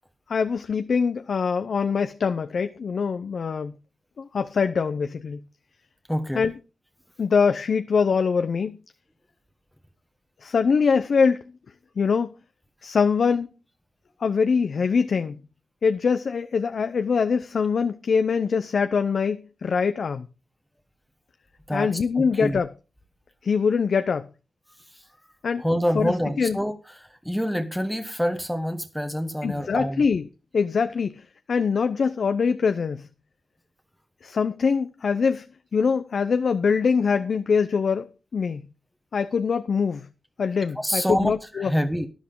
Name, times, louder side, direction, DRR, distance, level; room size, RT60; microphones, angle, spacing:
voice 1, 0.3-3.8 4.2-5.4 6.3-6.6 7.2-8.8 10.4-11.4 12.0-12.3 12.8-13.5 14.2-15.4 15.8-20.3 21.7-22.7 23.4-24.3 25.4-25.6 25.9-26.6 29.4-30.2 30.5-33.1 34.2-35.5 35.7-38.6 39.1-40.1 40.4-41.7, left 5 dB, 65° left, 0.6 m, -23 dB
voice 2, 6.1-6.4 21.7-21.9 22.1-22.6 25.6-26.7 27.2-30.0 40.8-42.1, equal, ahead, 1.1 m, -26 dB
12.0 x 10.5 x 3.8 m
cardioid pair, 85°, 0 cm